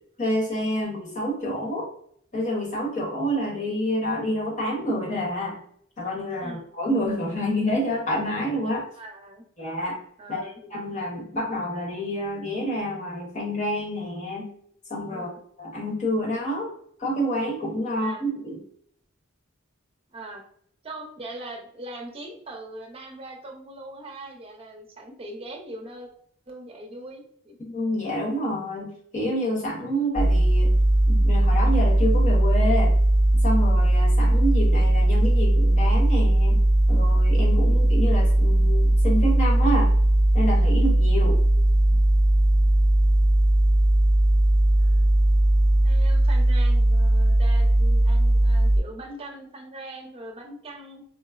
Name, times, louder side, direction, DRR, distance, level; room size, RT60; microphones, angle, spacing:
voice 1, 0.2-1.9 2.3-5.6 6.0-8.8 9.6-10.0 10.3-14.5 14.9-15.3 15.6-16.7 17.0-18.6 27.6-30.7 31.1-32.9 33.4-36.6 36.9-39.9 40.3-41.4, equal, 40° left, -2 dB, 1.1 m, -28 dB
voice 2, 9.0-9.4 10.2-10.6 15.1-15.4 17.9-18.2 20.1-20.4 20.8-26.1 26.5-27.6 44.8-45.1 45.8-51.0, right 1 dB, 30° right, 1 dB, 0.6 m, -41 dB
sound 1, 30.2-48.8, right 1 dB, 20° left, 0.9 m, -19 dB
4.4 x 2.0 x 2.4 m, 0.66 s
head